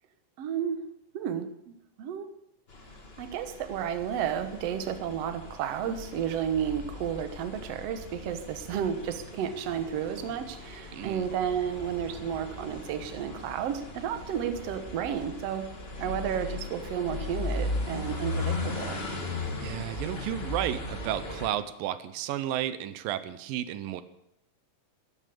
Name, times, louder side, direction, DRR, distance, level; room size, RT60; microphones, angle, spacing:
voice 1, 0.4-0.8 1.1-2.3 3.2-15.7 16.0-19.0, right 8 dB, 60° right, 9 dB, 2.0 m, -32 dB
sound 1, 2.7-21.5, left 2 dB, 30° left, 1.2 m, -38 dB
voice 2, 10.9-11.3 19.6-24.0, right 12 dB, 90° right, 13 dB, 2.6 m, -32 dB
14.0 x 12.5 x 6.8 m, 0.79 s
omnidirectional pair, 3.9 m